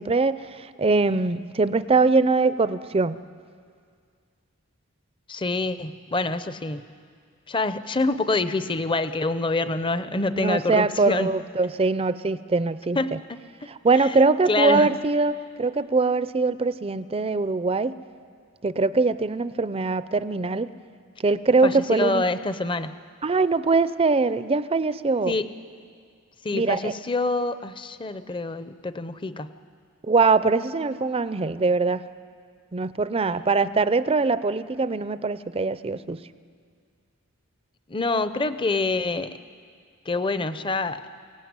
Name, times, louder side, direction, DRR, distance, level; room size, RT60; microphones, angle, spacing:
voice 1, 0.0-3.2 10.3-13.0 13.8-18.0 18.6-20.7 21.2-22.2 23.2-25.3 26.5-26.9 30.1-32.1 32.7-36.2, right 3 dB, 25° right, 14 dB, 0.5 m, -22 dB
voice 2, 5.3-6.8 7.5-11.3 12.9-13.4 14.0-14.1 14.5-14.9 21.6-23.0 25.3-25.5 26.4-29.5 37.9-39.4 40.1-41.0, left 3 dB, 20° left, 12 dB, 0.6 m, -26 dB
22.5 x 17.0 x 9.6 m, 2.1 s
head